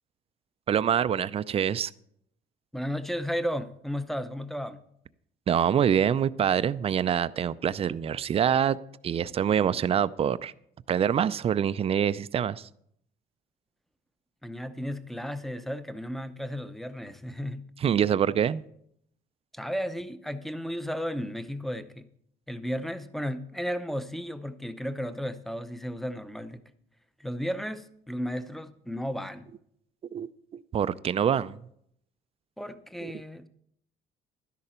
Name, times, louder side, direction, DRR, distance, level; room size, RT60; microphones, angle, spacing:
voice 1, 0.7-1.9 5.5-8.8 9.0-10.5 10.9-12.7 17.8-18.6 30.1-31.6 33.0-33.1, right 8 dB, 35° right, 0.4 m, -25 dB
voice 2, 2.7-4.8 14.4-17.7 19.5-22.1 22.5-26.6 27.2-29.5 32.6-33.5, equal, ahead, 0.7 m, -34 dB
12.5 x 10.5 x 4.4 m
cardioid pair, 110°, 17 cm